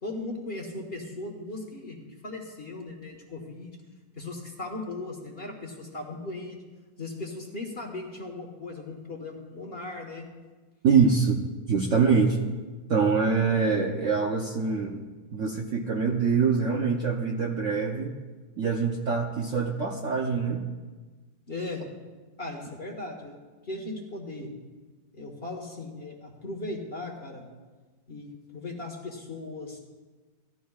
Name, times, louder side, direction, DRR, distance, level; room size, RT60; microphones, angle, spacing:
voice 1, 0.0-3.8 4.2-6.6 7.0-10.3 21.5-21.9 22.4-23.4 23.6-24.5 25.1-27.4 28.1-29.8, left 2 dB, 35° left, 0 dB, 1.3 m, -37 dB
voice 2, 10.8-11.4 11.7-12.4 12.9-15.0 15.3-18.1 18.6-20.6, right 5 dB, 55° right, 0 dB, 0.9 m, -24 dB
16.5 x 12.0 x 2.4 m, 1.3 s
omnidirectional pair, 2.0 m